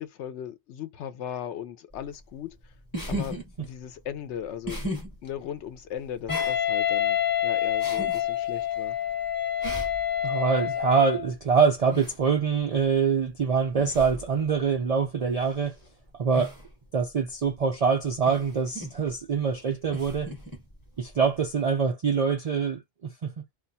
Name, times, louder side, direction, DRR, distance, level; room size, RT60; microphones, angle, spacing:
voice 1, 0.0-2.7 3.1-4.9 5.2-9.0, left 9 dB, 70° left, 0.9 m, -37 dB
sound 1, 1.9-21.6, equal, 20° left, 0.9 m, -40 dB
Wind instrument woodwind instrument, 6.3-11.3, left 10 dB, 50° left, 0.6 m, -27 dB
voice 2, 10.2-15.8 16.1-16.6 16.9-20.3 21.0-23.4, right 6 dB, 75° right, 0.3 m, -25 dB
2.4 x 2.2 x 4.0 m
omnidirectional pair, 1.2 m